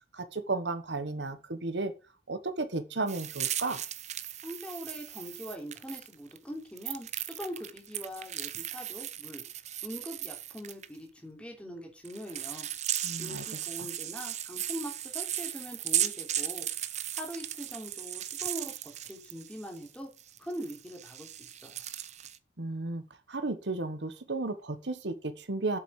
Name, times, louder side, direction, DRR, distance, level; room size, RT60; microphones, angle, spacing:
voice 1, 0.1-1.9 2.3-3.8 13.0-13.4 13.8-13.9 22.6-23.0 23.3-25.8, right 3 dB, 70° right, 11 dB, 1.4 m, -33 dB
sound 1, 3.1-6.4 6.8-10.9 12.0-19.9 20.2-22.4, right 11 dB, 40° right, 0.8 m, -36 dB
voice 2, 4.4-9.4 9.8-12.7 13.2-16.7 17.1-20.1 20.4-21.8, equal, 5° left, 1 dB, 3.5 m, -42 dB
8.2 x 7.6 x 7.4 m, 0.31 s
head